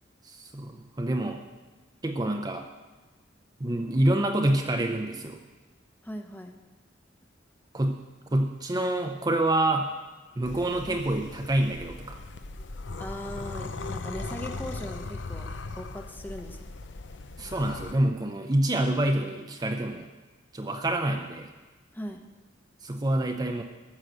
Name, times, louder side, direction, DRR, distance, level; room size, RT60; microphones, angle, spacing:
voice 1, 0.3-1.4 2.0-2.6 3.6-5.4 7.7-8.0 8.3-9.9 10.4-12.2 17.4-20.1 20.5-21.5 22.8-23.6, right 1 dB, 20° right, 4 dB, 0.6 m, -27 dB
voice 2, 6.0-6.6 13.0-15.5 15.7-16.7 21.9-22.2, equal, 10° left, 4 dB, 0.9 m, -39 dB
sound 1, 10.4-17.9, left 3 dB, 75° left, 0.7 m, -38 dB
sound 2, 14.2-18.0, equal, 45° left, 2.4 m, -51 dB
13.0 x 6.5 x 7.7 m, 1.2 s
head